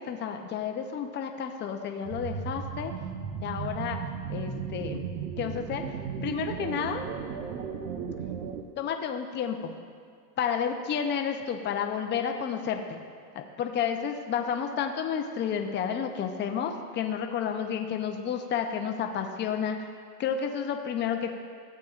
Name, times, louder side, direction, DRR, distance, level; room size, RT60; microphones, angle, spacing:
voice 1, 0.0-2.9 3.4-4.0 4.3-5.0 5.4-5.8 6.2-7.0 8.8-9.8 10.4-13.0 13.3-19.8 20.2-21.3, left 7 dB, 20° left, 4 dB, 0.6 m, -31 dB
sound 1, 2.0-8.6, right 6 dB, 60° right, 0.9 m, -35 dB
14.5 x 8.4 x 2.4 m, 2.2 s
supercardioid pair, 125°, 50 cm